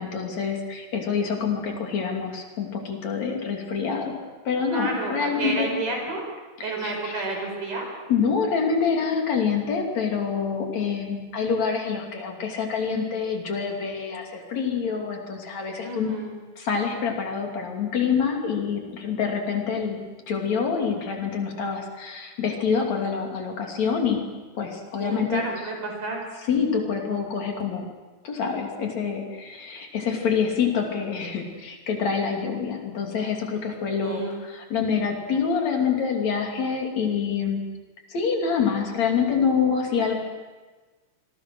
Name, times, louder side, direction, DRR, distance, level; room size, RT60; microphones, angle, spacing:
voice 1, 0.0-4.2 4.5-5.8 6.6-7.2 8.1-16.1 16.6-20.0 20.3-24.2 24.6-25.7 26.3-27.9 28.2-37.6 38.1-40.2, left 6 dB, 60° left, 2 dB, 4.1 m, -26 dB
voice 2, 4.7-6.2 6.6-7.9 15.8-16.3 25.0-26.2 34.0-34.4, right 3 dB, 85° right, 2 dB, 6.7 m, -30 dB
27.0 x 22.0 x 6.3 m, 1.3 s
omnidirectional pair, 3.5 m